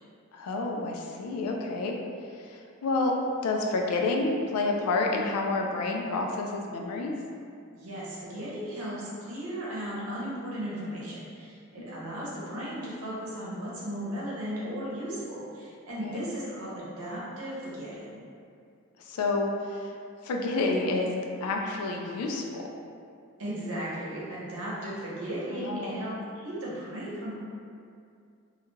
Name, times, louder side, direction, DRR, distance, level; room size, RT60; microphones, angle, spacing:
voice 1, 0.3-2.0 2.4-3.1 3.4-7.1 11.8-12.0 16.0-16.2 19.1-19.9 20.2-21.1 21.4-22.7 25.5-26.1, left 3 dB, 90° left, 1 dB, 0.3 m, -29 dB
voice 2, 7.7-18.1 23.4-27.3, equal, 75° right, -7 dB, 0.8 m, -36 dB
2.3 x 2.2 x 3.0 m, 2.4 s
head